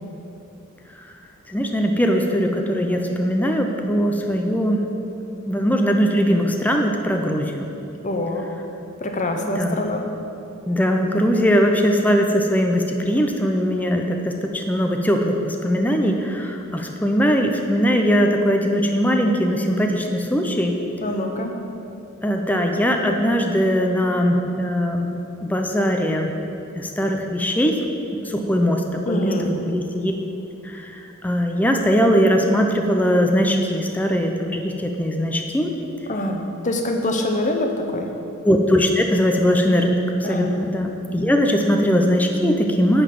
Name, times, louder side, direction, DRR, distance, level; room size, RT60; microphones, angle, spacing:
voice 1, 1.5-4.8 5.5-7.7 9.4-9.8 10.7-20.8 22.2-25.1 25.4-26.3 26.7-27.8 28.3-30.1 30.7-30.9 31.2-35.7 38.4-43.0, equal, 10° left, 3 dB, 0.5 m, -20 dB
voice 2, 8.0-8.5 9.0-10.0 21.0-21.5 29.1-29.6 36.1-38.1 40.2-40.6, left 1 dB, 35° left, 3 dB, 0.8 m, -24 dB
10.0 x 4.0 x 7.6 m, 2.8 s
head